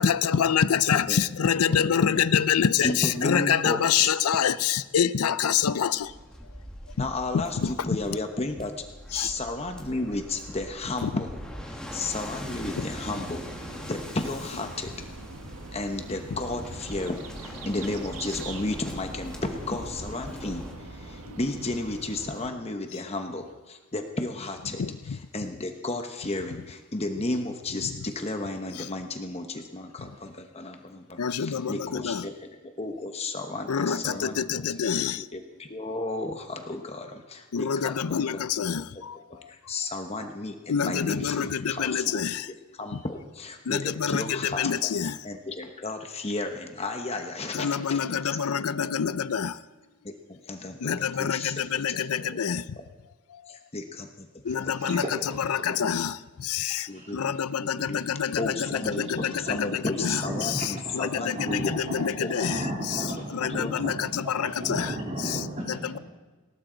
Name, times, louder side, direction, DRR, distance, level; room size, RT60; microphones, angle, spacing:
voice 1, 0.0-6.1 7.6-7.7 9.1-9.3 11.0-11.1 12.8-12.9 21.3-21.4 24.8-25.2 28.8-28.9 31.2-32.3 33.7-35.3 37.5-39.2 40.7-42.5 43.7-45.2 47.5-49.6 50.8-52.8 54.4-55.0 55.4-62.6 62.9-63.0 63.3-64.9 65.2-65.4, left 7 dB, 80° left, 16 dB, 0.5 m, -26 dB
voice 2, 1.7-2.2 2.8-4.1 7.0-8.8 9.1-11.4 11.6-13.4 13.8-14.9 15.7-34.7 35.2-38.4 39.3-48.4 50.0-52.0 52.3-52.4 52.8-52.9 53.5-54.3 54.6-54.9 56.9-58.1 58.4-61.7 62.0-62.3 63.5-63.7, left 2 dB, 25° left, 5 dB, 1.0 m, -33 dB
Waves surf, 6.0-20.8, equal, 5° left, 1.7 m, -42 dB
sound 1, 12.4-22.5, right 2 dB, 80° right, 1.5 m, -43 dB
voice 3, 54.5-55.8 56.9-57.1 59.1-59.6 60.0-60.7 61.2-66.0, right 1 dB, 30° right, -2 dB, 3.4 m, -35 dB
19.5 x 17.5 x 3.9 m, 1.3 s
head